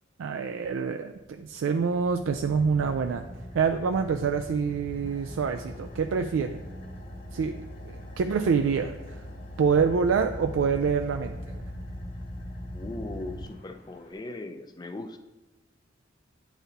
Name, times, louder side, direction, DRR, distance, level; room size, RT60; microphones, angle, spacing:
voice 1, 0.2-3.2 3.5-6.6 7.3-7.6 7.8-9.2 9.6-11.4, right 5 dB, 90° right, 6 dB, 0.3 m, -26 dB
Car / Idling, 1.2-14.1, equal, 45° left, 1.4 m, -41 dB
voice 2, 12.7-15.2, left 2 dB, 20° left, 8 dB, 0.4 m, -38 dB
9.0 x 4.1 x 4.1 m, 1.1 s
head